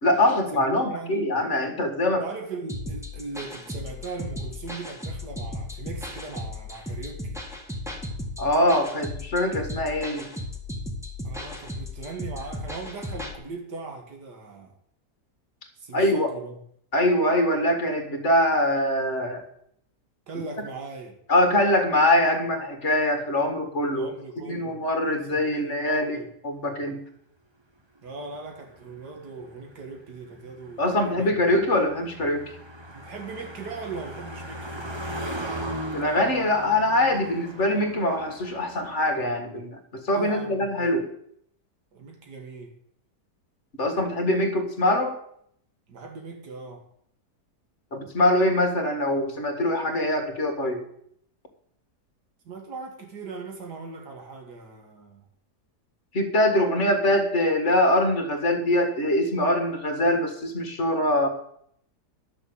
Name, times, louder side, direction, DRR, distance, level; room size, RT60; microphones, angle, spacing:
voice 1, 0.0-2.3 8.4-10.3 15.9-16.3 16.9-19.4 21.3-24.1 24.5-26.2 26.4-27.0 30.8-32.5 35.9-39.8 40.0-41.1 43.8-45.2 47.9-50.8 56.1-61.3, left 1 dB, 45° left, 5 dB, 2.1 m, -23 dB
voice 2, 0.5-1.3 2.2-7.4 11.2-14.7 15.8-16.6 20.3-21.1 23.9-24.9 25.3-26.3 28.0-31.4 32.9-35.2 40.1-40.9 41.9-42.8 45.9-46.8 52.5-55.3, right 4 dB, 75° right, 2 dB, 2.4 m, -39 dB
sound 1, 2.7-13.3, left 1 dB, ahead, 1.6 m, -35 dB
Car passing by, 28.1-39.3, right 1 dB, 20° right, 0.9 m, -38 dB
11.5 x 6.7 x 7.9 m, 0.70 s
omnidirectional pair, 1.8 m